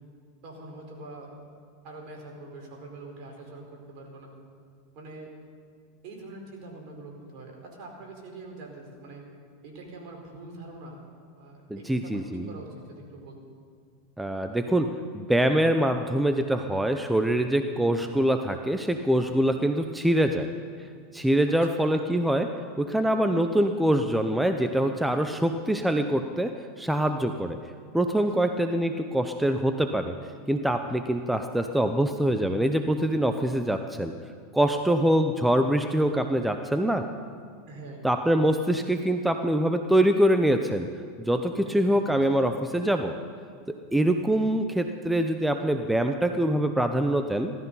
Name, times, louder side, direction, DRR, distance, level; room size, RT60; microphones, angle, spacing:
voice 1, 0.4-1.3 1.8-4.3 4.9-5.3 6.0-9.2 9.6-11.0 11.3-13.4 21.6-21.9 28.4-28.5 37.7-38.1 41.6-42.2, right 2 dB, 55° right, 0 dB, 4.7 m, -44 dB
voice 2, 11.7-12.5 14.2-20.5 21.1-27.6 27.9-30.1 30.5-34.1 34.5-37.1 38.0-40.9 41.2-43.1 43.7-47.5, right 1 dB, 5° right, 7 dB, 0.7 m, -24 dB
17.0 x 13.5 x 5.6 m, 2.2 s
hypercardioid pair, 110°, 0 cm